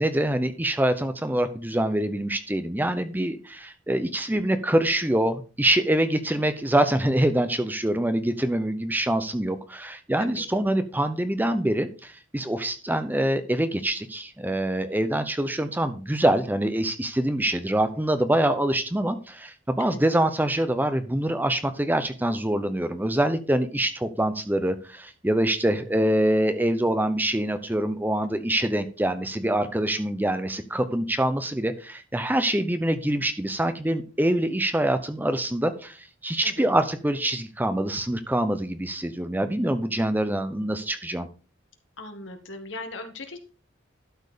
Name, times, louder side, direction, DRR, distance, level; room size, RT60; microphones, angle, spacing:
voice 1, 0.0-36.0 36.2-41.3, right 1 dB, 10° right, 10 dB, 0.7 m, -25 dB
voice 2, 42.0-43.5, left 2 dB, 75° left, 6 dB, 1.7 m, -39 dB
12.0 x 4.5 x 5.0 m, 0.36 s
head